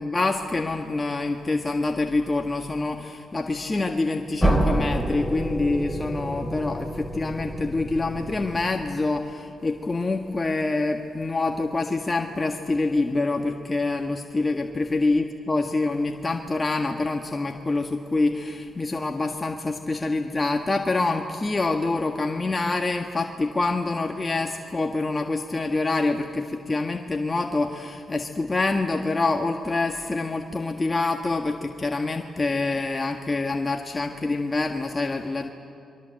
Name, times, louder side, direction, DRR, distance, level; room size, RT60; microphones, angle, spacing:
voice 1, 0.0-35.5, left 3 dB, 30° left, 3 dB, 1.6 m, -26 dB
sound 1, 4.4-9.2, right 1 dB, 5° left, 4.5 m, -28 dB
28.0 x 22.5 x 7.8 m, 2.5 s
cardioid pair, 60°, 0 cm